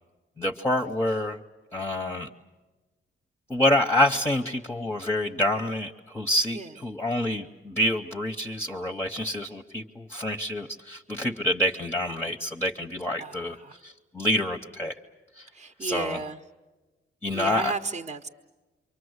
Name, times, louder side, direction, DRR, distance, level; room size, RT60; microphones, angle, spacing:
voice 1, 0.4-1.4 1.7-2.3 3.5-13.6 13.8-14.9 15.4-15.5 15.8-16.2 17.2-17.7, left 1 dB, 10° left, 3 dB, 0.8 m, -27 dB
voice 2, 13.2-13.8 15.5-16.4 17.3-18.3, right 4 dB, 35° right, 4 dB, 0.9 m, -34 dB
28.5 x 24.0 x 8.0 m, 1.2 s
wide cardioid pair, 140°, 20 cm